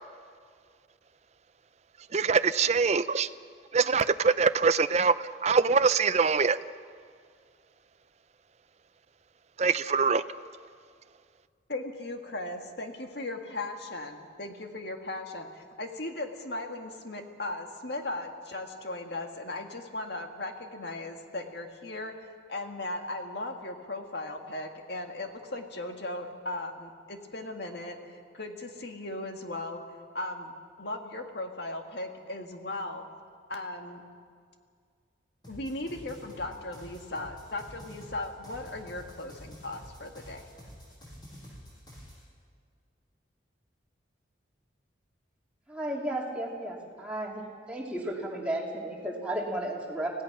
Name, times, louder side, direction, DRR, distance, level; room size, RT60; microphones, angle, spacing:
voice 1, 2.1-3.3 3.7-6.6 9.6-10.2, right 5 dB, 35° right, 13 dB, 0.5 m, -24 dB
voice 2, 11.7-29.8 30.1-30.5 30.8-33.1 33.5-34.0 35.5-40.4, left 2 dB, 60° left, 4 dB, 1.9 m, -37 dB
sound 1, 35.4-42.2, equal, 20° left, 6.3 m, -48 dB
voice 3, 45.7-47.4 47.7-50.1, right 1 dB, 5° right, -3 dB, 3.1 m, -33 dB
25.5 x 17.0 x 6.1 m, 2.1 s
head